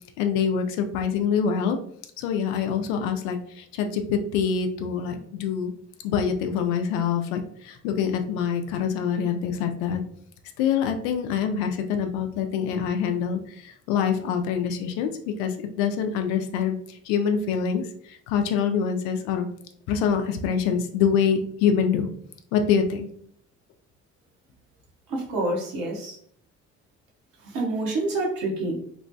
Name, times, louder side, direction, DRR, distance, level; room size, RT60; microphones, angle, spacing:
voice 1, 0.2-1.8 2.2-3.4 3.8-5.7 6.0-7.4 7.8-10.0 10.6-13.4 13.9-15.1 15.4-15.5 15.8-16.8 17.1-17.8 18.3-19.5 19.9-22.1 22.5-23.1, left 7 dB, 80° left, 6 dB, 0.5 m, -25 dB
voice 2, 25.1-26.1 27.5-28.8, right 2 dB, 70° right, -1 dB, 1.0 m, -27 dB
3.0 x 2.1 x 2.6 m, 0.64 s
hypercardioid pair, 50°, 36 cm